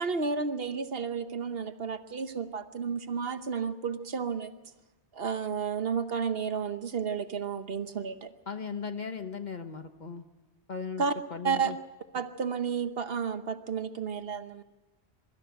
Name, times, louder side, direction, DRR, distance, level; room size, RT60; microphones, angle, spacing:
voice 1, 0.0-4.5 5.1-8.3 11.0-11.1 11.4-11.7 12.1-14.6, right 6 dB, 65° right, 10 dB, 1.2 m, -32 dB
voice 2, 8.5-10.2 10.7-11.8, left 5 dB, 45° left, 8 dB, 1.2 m, -37 dB
23.5 x 13.5 x 9.0 m, 1.1 s
omnidirectional pair, 1.1 m